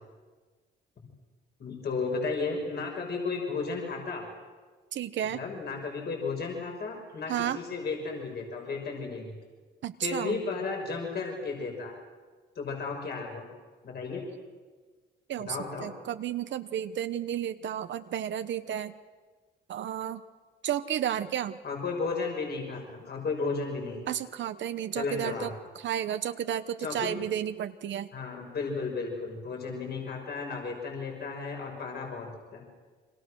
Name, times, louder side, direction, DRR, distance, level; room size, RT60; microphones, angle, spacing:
voice 1, 1.6-4.2 5.3-9.3 10.0-11.9 12.6-13.5 13.8-14.2 15.4-15.9 21.6-24.0 25.0-25.5 26.8-27.2 28.1-32.6, left 4 dB, 55° left, 1 dB, 6.1 m, -34 dB
voice 2, 4.9-5.4 7.3-7.6 9.8-10.4 15.3-18.9 19.7-20.2 20.6-21.6 24.1-28.1, right 10 dB, 70° right, 10 dB, 1.1 m, -32 dB
30.0 x 24.5 x 6.4 m, 1.4 s
cardioid pair, 90°, 20 cm